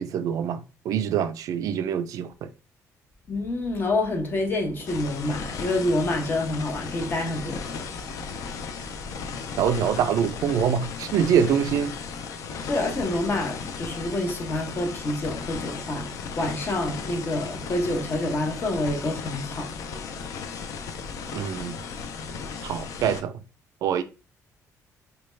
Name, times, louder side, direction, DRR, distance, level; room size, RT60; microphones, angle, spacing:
voice 1, 0.0-2.5 9.6-11.9 21.3-21.8 22.6-23.3 23.8-24.0, right 8 dB, 70° right, 0.3 m, -25 dB
voice 2, 3.3-7.8 12.7-19.7, left 2 dB, 35° left, 0.8 m, -27 dB
sound 1, 4.9-23.2, left 5 dB, 65° left, 0.5 m, -36 dB
4.1 x 2.2 x 3.1 m
cardioid pair, 155°, 6 cm